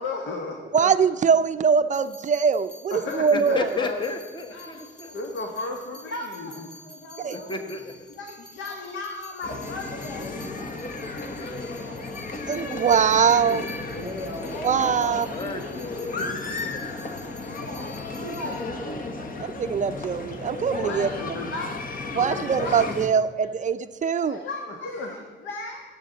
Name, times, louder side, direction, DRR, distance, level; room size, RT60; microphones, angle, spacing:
voice 1, 0.0-0.9 2.9-4.0 4.5-7.8 8.2-12.2 13.5-14.0 14.8-15.3 16.0-16.9 17.6-18.0 18.3-19.5 20.8-21.8 22.1-22.9 24.2-25.8, left 3 dB, 70° left, 1 dB, 1.5 m, -36 dB
voice 2, 0.7-3.7 7.2-7.4 12.5-13.6 14.6-15.3 19.4-21.1 22.1-24.4, right 6 dB, 40° right, 11 dB, 0.5 m, -22 dB
sound 1, 1.9-18.6, left 1 dB, 5° left, 2.6 m, -49 dB
voice 3, 3.3-5.1 7.3-7.9 11.4-11.6 14.5-16.3, left 3 dB, 25° left, 6 dB, 1.1 m, -33 dB
sound 2, 9.4-23.1, left 3 dB, 45° left, 1.2 m, -34 dB
voice 4, 12.8-14.6 16.6-17.3, left 1 dB, 90° left, -2 dB, 4.1 m, -41 dB
19.0 x 7.7 x 4.0 m, 1.4 s
cardioid pair, 90°, 20 cm